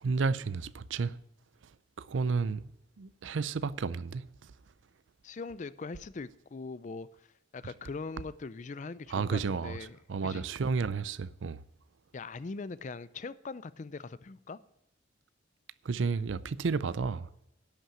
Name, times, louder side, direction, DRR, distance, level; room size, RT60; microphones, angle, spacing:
voice 1, 0.0-1.2 2.1-2.6 3.0-4.2 9.1-9.7 10.1-11.6 15.9-17.3, right 4 dB, 80° right, 0.5 m, -31 dB
voice 2, 5.2-7.3 7.5-10.5 12.1-14.6, left 4 dB, 40° left, 0.4 m, -41 dB
11.0 x 5.7 x 8.9 m
head